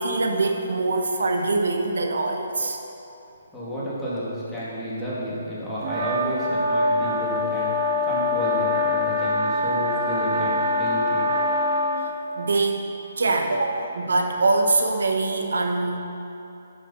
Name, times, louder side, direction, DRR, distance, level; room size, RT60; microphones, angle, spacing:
voice 1, 0.0-2.8 12.4-12.8 13.2-16.0, right 3 dB, 80° right, 3 dB, 1.0 m, -23 dB
voice 2, 3.5-7.7 8.0-11.3, equal, 5° left, -11 dB, 2.5 m, -31 dB
sound 1, 5.8-12.1, left 2 dB, 45° right, 1.4 m, -24 dB
9.8 x 7.3 x 5.7 m, 2.9 s
hypercardioid pair, 155°, 0 cm